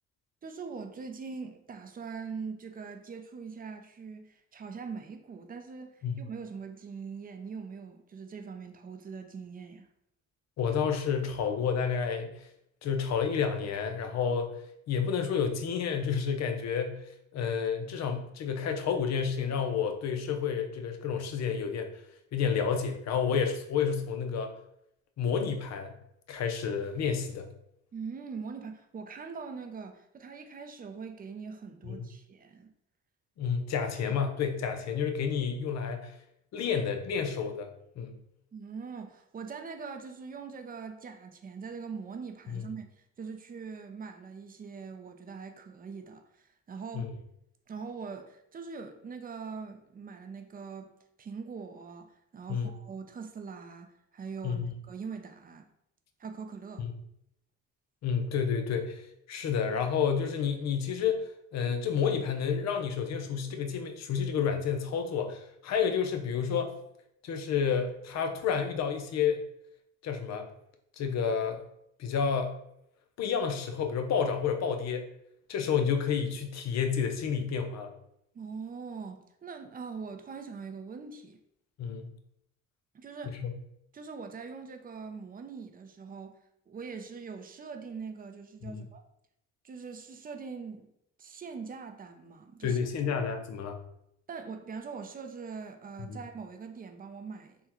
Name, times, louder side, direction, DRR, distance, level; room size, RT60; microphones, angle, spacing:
voice 1, 0.4-9.9 27.9-32.7 38.5-47.1 47.7-50.9 51.2-55.7 56.2-56.9 78.3-81.4 82.9-83.4 83.9-86.4 86.7-89.0 89.6-90.9 91.2-92.8 94.3-97.6, right 5 dB, 30° right, 0.4 m, -42 dB
voice 2, 10.6-12.3 12.8-14.5 14.9-17.0 17.3-21.9 22.3-24.5 25.2-25.9 26.3-27.5 31.9-32.1 33.4-36.1 36.5-37.7 38.0-38.2 42.5-42.6 46.9-47.1 52.5-52.7 54.4-54.7 58.0-59.0 59.3-66.7 67.2-69.4 70.0-70.5 71.0-71.6 72.0-72.5 73.2-75.1 75.5-77.9 81.8-82.1 83.3-83.5 88.6-88.8 92.6-93.8 96.1-96.2, left 6 dB, 60° left, 0.6 m, -30 dB
3.6 x 2.1 x 2.9 m
cardioid pair, 90°, 30 cm